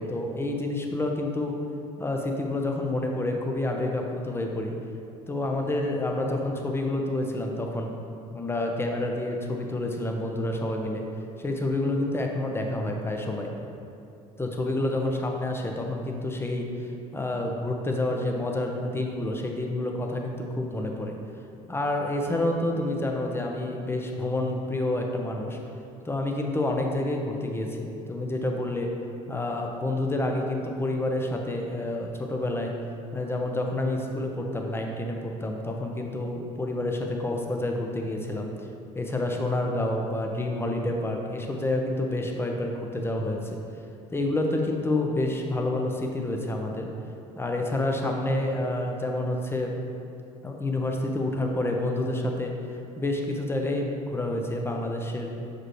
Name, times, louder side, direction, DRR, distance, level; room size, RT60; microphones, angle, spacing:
voice 1, 0.0-1.5 2.0-4.7 5.3-7.9 8.3-11.0 11.4-13.5 14.4-16.7 17.1-21.2 21.7-25.6 26.0-28.9 29.3-32.7 33.1-38.7 38.9-43.6 44.1-46.9 47.4-49.7 50.4-52.5 53.0-55.3, left 1 dB, 15° left, 2 dB, 0.8 m, -28 dB
6.2 x 5.0 x 3.1 m, 2.7 s
hypercardioid pair, 65°, 18 cm